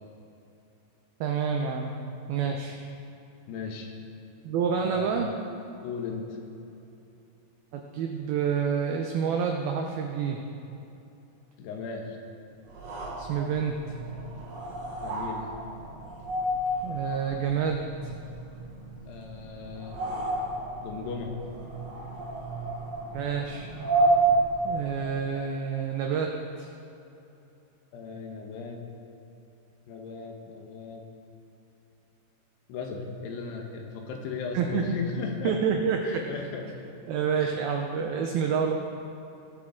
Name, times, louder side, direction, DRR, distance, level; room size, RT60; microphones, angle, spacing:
voice 1, 1.2-2.0 2.3-2.8 4.4-5.3 7.7-10.4 13.2-13.8 16.8-18.2 23.1-23.7 24.6-26.7 34.5-35.0 35.4-36.2 37.1-38.7, right 6 dB, 85° right, 3 dB, 2.1 m, -28 dB
voice 2, 3.5-3.9 4.8-5.3 5.8-6.4 11.6-12.2 15.0-15.5 19.1-20.0 20.8-21.3 27.9-28.8 29.9-31.0 32.7-35.6 36.0-36.7 37.4-37.6, left 5 dB, 75° left, 2 dB, 3.0 m, -36 dB
sound 1, 12.7-25.2, right 2 dB, 60° right, 1.8 m, -31 dB
20.0 x 7.8 x 3.8 m, 2.8 s
omnidirectional pair, 5.2 m